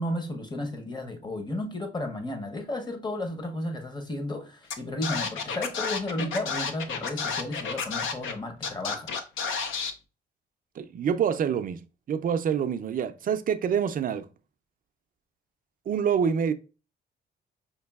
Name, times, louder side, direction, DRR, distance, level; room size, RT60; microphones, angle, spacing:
voice 1, 0.0-9.2, left 1 dB, 20° left, 0.8 m, -33 dB
Scratching (performance technique), 4.7-4.8 5.0-8.3 8.6-9.9, left 5 dB, 75° left, 0.6 m, -31 dB
voice 2, 10.8-11.8 12.1-14.3 15.9-16.5, right 7 dB, 45° right, 0.4 m, -26 dB
5.2 x 2.6 x 2.3 m
cardioid pair, 90°, 20 cm